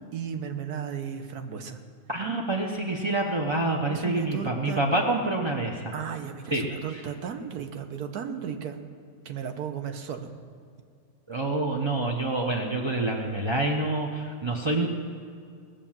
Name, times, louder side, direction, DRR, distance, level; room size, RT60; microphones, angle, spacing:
voice 1, 0.1-1.8 3.9-4.8 5.9-8.8 9.2-10.3, right 7 dB, 65° right, 7 dB, 1.4 m, -35 dB
voice 2, 2.1-5.9 6.5-6.6 6.9-7.0 11.3-14.9, right 2 dB, 35° right, 1 dB, 0.4 m, -27 dB
19.0 x 6.8 x 7.3 m, 2.3 s
omnidirectional pair, 1.9 m